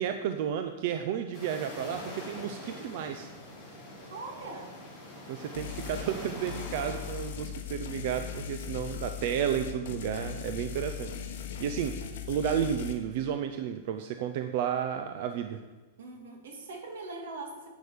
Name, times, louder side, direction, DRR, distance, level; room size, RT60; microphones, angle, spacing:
voice 1, 0.0-3.3 5.3-12.0 12.3-15.6, right 9 dB, 40° right, 7 dB, 0.5 m, -32 dB
sound 1, 1.3-7.3, left 1 dB, ahead, 3.6 m, -44 dB
voice 2, 4.1-4.7 16.0-17.7, right 3 dB, 75° right, 2 dB, 2.5 m, -41 dB
sound 2, 5.5-6.1 6.5-12.9, left 8 dB, 60° left, 1.3 m, -39 dB
11.0 x 8.2 x 5.1 m, 1.3 s
supercardioid pair, 180°, 0 cm